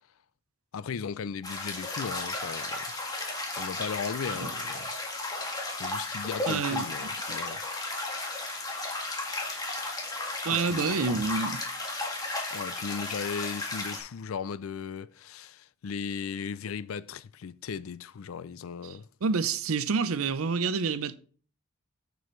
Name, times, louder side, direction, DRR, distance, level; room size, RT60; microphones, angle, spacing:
voice 1, 0.7-2.9 3.6-4.9 5.8-7.6 10.5-10.9 12.5-19.1, left 6 dB, 75° left, 0.4 m, -37 dB
sound 1, 1.4-14.0, left 2 dB, 20° left, 1.7 m, -34 dB
voice 2, 6.5-6.9 10.4-11.6 18.8-19.0 19.2-21.1, right 5 dB, 80° right, 0.6 m, -28 dB
7.8 x 6.9 x 3.2 m
head